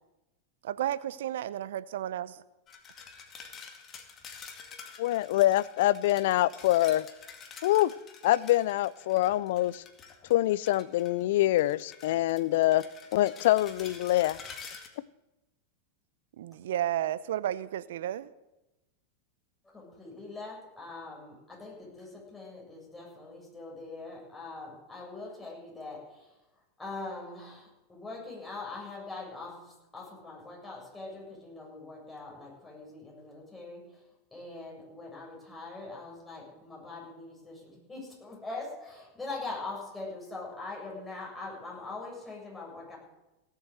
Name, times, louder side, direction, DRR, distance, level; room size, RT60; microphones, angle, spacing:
voice 1, 0.6-2.4 16.4-18.3, right 12 dB, 70° right, 17 dB, 0.7 m, -32 dB
sound 1, 2.7-11.2 11.6-14.9, left 6 dB, 35° left, 2.2 m, -48 dB
voice 2, 5.0-7.0 7.6-7.9 8.2-9.8 10.3-12.8 13.1-14.4, left 15 dB, 65° left, 21 dB, 0.4 m, -25 dB
voice 3, 19.6-26.3 26.8-34.0 34.3-43.0, left 3 dB, 10° left, -3 dB, 7.2 m, -42 dB
17.0 x 7.7 x 8.1 m, 0.99 s
hypercardioid pair, 95°, 0 cm